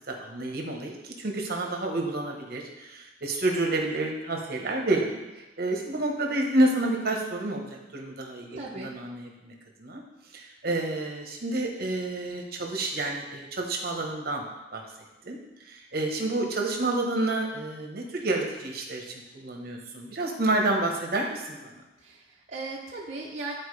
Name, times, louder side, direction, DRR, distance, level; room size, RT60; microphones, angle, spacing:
voice 1, 0.1-5.2 5.6-9.5 9.8-10.0 10.3-14.4 14.7-14.8 15.2-15.4 15.7-21.7, right 2 dB, 60° right, 1 dB, 1.1 m, -29 dB
voice 2, 8.5-8.9 22.0-23.5, right 3 dB, 40° right, -5 dB, 0.8 m, -37 dB
10.5 x 4.5 x 3.3 m, 1.0 s
head